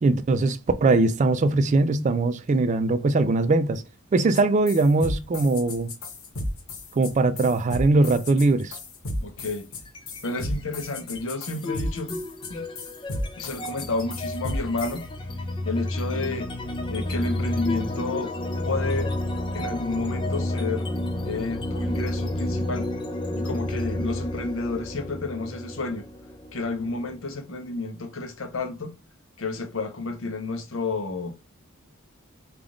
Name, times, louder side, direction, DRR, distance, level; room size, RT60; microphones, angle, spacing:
voice 1, 0.0-3.8 4.1-5.9 6.9-8.8, right 3 dB, 35° right, 0.3 m, -21 dB
sound 1, 4.3-4.4 4.7-15.0, left 1 dB, 90° left, 1.1 m, -33 dB
voice 2, 9.2-9.7 10.2-12.2 12.5-12.6 13.4-15.0 15.7-16.5 16.9-18.3 18.6-19.1 19.5-20.9 21.2-22.9 23.4-26.1 26.5-28.9 29.4-31.3, left 3 dB, 65° left, 0.8 m, -30 dB
sound 2, 9.9-10.4 10.7-27.3, left 1 dB, 25° left, 0.5 m, -31 dB
3.5 x 2.5 x 3.6 m
head